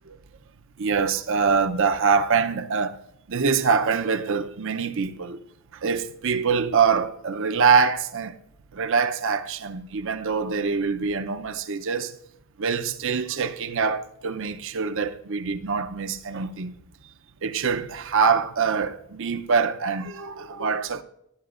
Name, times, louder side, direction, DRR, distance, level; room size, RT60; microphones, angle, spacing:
voice 1, 0.8-3.0 3.3-5.4 5.7-8.4 8.7-12.2 12.6-16.7 17.4-21.0, right 5 dB, 60° right, 0.6 m, -24 dB
18.5 x 10.5 x 2.4 m
head